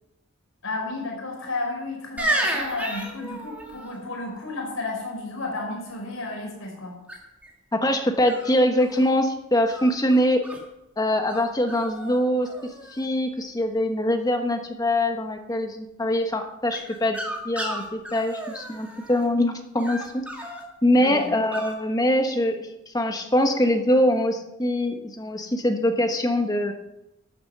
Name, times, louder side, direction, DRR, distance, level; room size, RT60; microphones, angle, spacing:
voice 1, 0.6-7.0 21.0-21.3, left 2 dB, 80° left, -1 dB, 5.2 m, -32 dB
sound 1, 2.2-3.9 7.1-7.5 8.2-9.1 9.7-10.6 11.3-11.4 11.7-12.2 12.4-13.0 16.7-19.2 19.8-20.6 21.5-21.7, right 1 dB, 5° right, 2.3 m, -32 dB
voice 2, 7.7-10.4 11.0-12.5 12.9-17.2 17.4-20.2 20.8-22.6 22.9-26.7, left 1 dB, 20° left, 5 dB, 1.2 m, -23 dB
12.5 x 8.1 x 6.7 m, 0.90 s
head